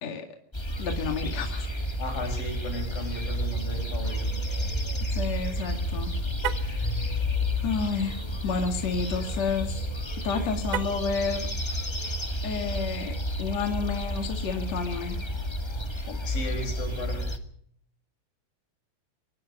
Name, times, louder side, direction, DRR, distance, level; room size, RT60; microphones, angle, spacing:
sound 1, 0.5-17.4, equal, 35° left, 0.4 m, -31 dB
voice 1, 0.8-1.7 5.1-6.1 6.5-6.9 7.6-9.9 10.2-11.5 12.4-15.2 16.1-16.2, left 5 dB, 55° left, 4 dB, 3.2 m, -30 dB
voice 2, 2.0-4.7 16.3-17.3, left 2 dB, 80° left, 5 dB, 7.4 m, -36 dB
Car, 6.3-6.8 10.7-11.2, right 12 dB, 70° right, 2.3 m, -33 dB
25.0 x 19.5 x 5.4 m, 0.64 s
omnidirectional pair, 4.0 m